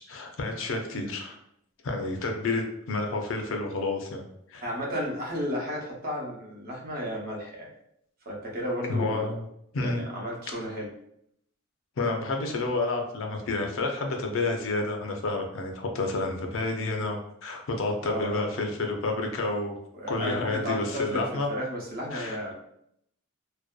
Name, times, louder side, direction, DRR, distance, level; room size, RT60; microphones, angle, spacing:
voice 1, 0.0-1.4 1.8-4.2 4.5-4.6 8.9-9.4 9.7-10.0 12.0-19.8 20.1-21.5 22.1-22.4, left 2 dB, 70° left, 3 dB, 0.4 m, -30 dB
voice 2, 4.6-7.7 8.3-9.3 9.8-10.9 18.0-18.5 19.9-22.5, equal, 45° right, -2 dB, 0.6 m, -33 dB
2.6 x 2.2 x 2.2 m, 0.74 s
head